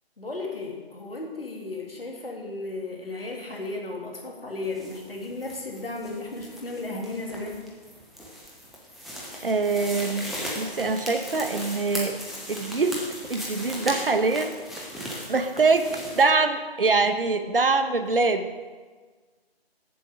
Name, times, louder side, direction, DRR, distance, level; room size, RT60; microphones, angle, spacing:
voice 1, 0.2-7.6, left 2 dB, 65° left, 0 dB, 1.9 m, -34 dB
sound 1, 4.6-16.2, equal, ahead, 0.4 m, -37 dB
voice 2, 9.4-12.2 12.5-14.6 15.3-18.5, right 3 dB, 60° right, 8 dB, 0.8 m, -24 dB
7.9 x 7.1 x 4.9 m, 1.4 s
figure-of-eight pair, 155°, 31 cm